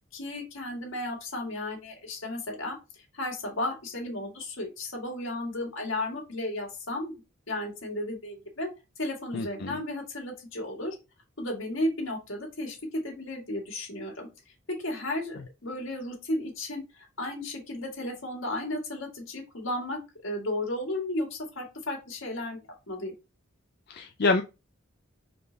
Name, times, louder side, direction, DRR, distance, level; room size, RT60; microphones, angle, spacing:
voice 1, 0.1-2.8 3.1-7.1 7.5-8.7 9.0-11.0 11.4-14.3 14.7-22.6 22.9-23.1, left 1 dB, 70° left, 0 dB, 1.8 m, -34 dB
voice 2, 9.3-9.8 23.9-24.4, left 3 dB, 50° left, 5 dB, 0.4 m, -26 dB
4.1 x 3.3 x 3.9 m, 0.27 s
head